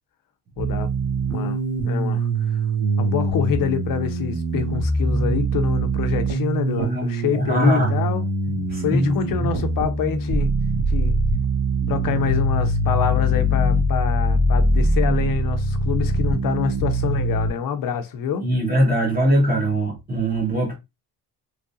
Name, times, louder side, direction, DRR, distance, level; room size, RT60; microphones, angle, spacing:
voice 1, 0.6-0.9 1.3-1.6 1.8-2.6 3.0-8.3 8.8-10.5 10.9-11.2 11.9-18.5, left 7 dB, 55° left, 0.6 m, -26 dB
sound 1, 0.6-17.5, right 1 dB, 85° right, 1.8 m, -23 dB
voice 2, 6.7-7.0 7.3-7.9 8.7-9.5 18.4-20.8, equal, 20° right, 1.4 m, -21 dB
3.6 x 3.2 x 2.6 m
cardioid pair, 160°, 40 cm